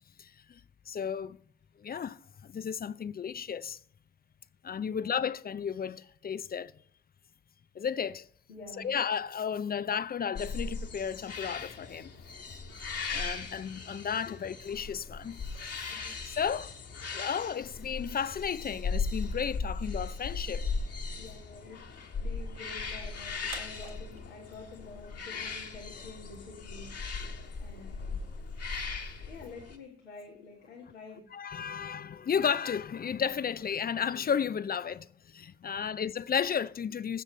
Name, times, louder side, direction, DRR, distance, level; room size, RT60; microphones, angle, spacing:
voice 1, 0.2-0.6 0.9-1.4 1.8-3.8 4.6-6.7 7.7-8.3 8.8-12.1 13.1-15.4 16.2-16.7 17.1-20.7 31.3-37.2, left 7 dB, 30° left, 0.5 m, -33 dB
voice 2, 4.8-5.1 8.5-8.9 14.3-14.4 15.9-16.2 21.2-21.8 22.2-27.1 27.6-28.2 29.2-31.2 35.7-35.9, left 3 dB, 85° left, 1.6 m, -48 dB
sound 1, 10.3-29.8, left 4 dB, 50° left, 1.7 m, -38 dB
sound 2, 23.4-29.1, right 5 dB, 75° right, 1.9 m, -56 dB
20.5 x 7.4 x 3.2 m
hypercardioid pair, 45°, 32 cm